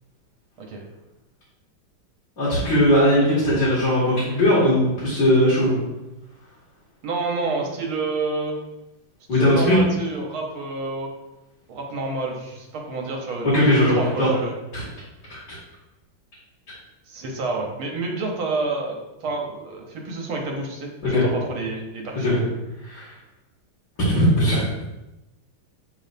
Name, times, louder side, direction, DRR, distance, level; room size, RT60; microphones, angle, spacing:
voice 1, 2.4-5.8 9.3-9.8 13.4-14.3 14.7-14.9 15.3-15.4 21.0-21.2 22.2-22.3 22.8-23.1 24.1-24.7, equal, 55° left, -11 dB, 2.9 m, -19 dB
voice 2, 7.0-8.6 9.3-11.1 11.7-14.5 17.1-22.3, right 3 dB, 80° right, 0 dB, 1.9 m, -29 dB
7.2 x 5.4 x 2.7 m, 0.98 s
omnidirectional pair, 2.3 m